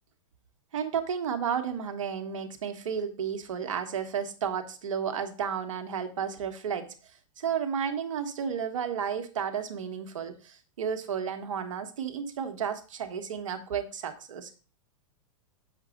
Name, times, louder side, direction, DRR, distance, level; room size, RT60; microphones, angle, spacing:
voice 1, 0.7-6.9 7.4-14.5, right 7 dB, 70° right, 6 dB, 1.4 m, -32 dB
8.0 x 6.1 x 3.7 m, 0.36 s
hypercardioid pair, 110°, 17 cm